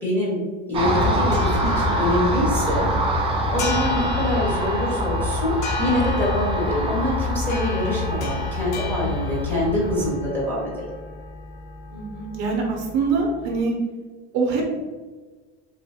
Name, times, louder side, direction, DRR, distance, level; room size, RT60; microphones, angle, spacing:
voice 1, 0.0-2.9 3.5-10.8, left 1 dB, 5° left, -6 dB, 0.8 m, -25 dB
Car passing by, 0.7-10.1, equal, 20° right, 0.3 m, -24 dB
sound 1, 1.0-13.6, left 3 dB, 60° left, 0.7 m, -35 dB
voice 2, 11.9-13.8 14.3-14.8, right 4 dB, 50° right, 0 dB, 0.8 m, -24 dB
3.2 x 2.9 x 2.8 m, 1.3 s
cardioid pair, 155°, 34 cm